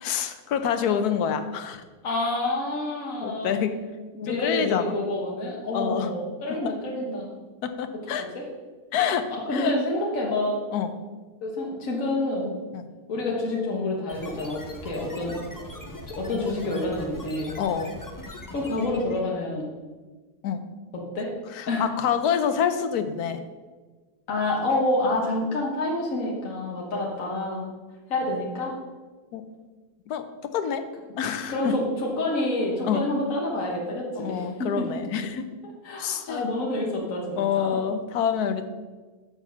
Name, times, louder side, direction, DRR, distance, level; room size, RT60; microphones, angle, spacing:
voice 1, 0.0-1.8 3.2-3.8 4.3-5.0 5.7-6.1 6.5-6.7 7.6-8.2 8.9-9.7 10.7-10.9 12.7-12.9 17.6-18.0 20.4-20.6 21.5-23.4 29.3-29.4 30.1-30.8 31.2-31.8 32.8-33.0 34.2-35.5 36.0-36.5 37.4-38.7, left 8 dB, 80° left, 9 dB, 1.2 m, -27 dB
voice 2, 2.0-3.6 4.1-7.3 8.2-8.5 9.5-10.6 11.4-12.5 13.1-15.4 16.1-17.6 18.5-19.7 20.9-21.3 21.7-21.9 24.3-27.6 28.1-28.7 31.5-34.9 35.8-37.8, left 2 dB, 60° left, -3 dB, 1.7 m, -28 dB
sound 1, 14.1-19.3, left 1 dB, 15° left, 0.7 m, -40 dB
6.9 x 6.9 x 5.8 m, 1.3 s
omnidirectional pair, 1.6 m